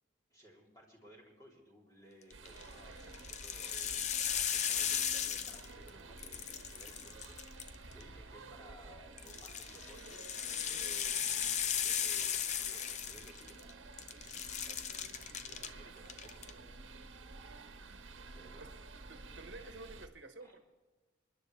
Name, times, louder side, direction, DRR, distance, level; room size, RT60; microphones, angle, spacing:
voice 1, 0.3-10.3 10.7-11.3 11.6-13.6 14.1-14.9 15.5-16.7 18.3-18.7 20.4-20.5, right 1 dB, 20° left, -3 dB, 3.3 m, -59 dB
sound 1, 2.3-2.6 3.1-5.9 6.2-8.0 9.2-13.7 14.0-15.7 16.1-16.5, left 8 dB, 35° left, 0.6 m, -36 dB
sound 2, 2.3-20.1, right 3 dB, 85° right, 1.2 m, -52 dB
voice 2, 19.1-20.6, right 2 dB, 65° right, 6 dB, 1.3 m, -51 dB
26.5 x 10.5 x 3.3 m, 1.3 s
head